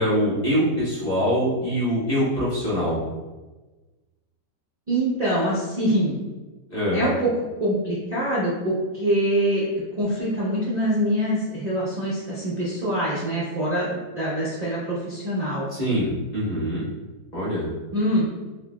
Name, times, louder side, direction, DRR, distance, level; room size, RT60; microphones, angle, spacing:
voice 1, 0.0-3.0 6.7-7.0 15.7-16.9 17.3-17.7, equal, 30° left, -8 dB, 1.0 m, -24 dB
voice 2, 4.9-6.1 6.9-9.7 10.0-15.7 17.9-18.3, right 1 dB, 80° right, -8 dB, 0.3 m, -24 dB
3.8 x 2.8 x 2.2 m, 1.2 s
omnidirectional pair, 1.8 m